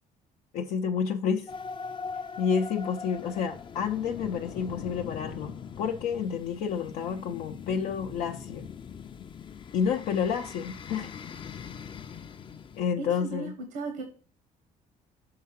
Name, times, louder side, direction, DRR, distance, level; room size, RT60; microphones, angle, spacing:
voice 1, 0.5-1.5 2.4-8.7 9.7-11.1 12.8-13.5, left 7 dB, 80° left, 0.6 m, -29 dB
sound 1, 1.5-12.8, left 6 dB, 35° left, 0.4 m, -41 dB
voice 2, 13.0-14.0, right 3 dB, 85° right, 1.1 m, -36 dB
6.6 x 3.7 x 5.8 m
cardioid pair, 110°, 15 cm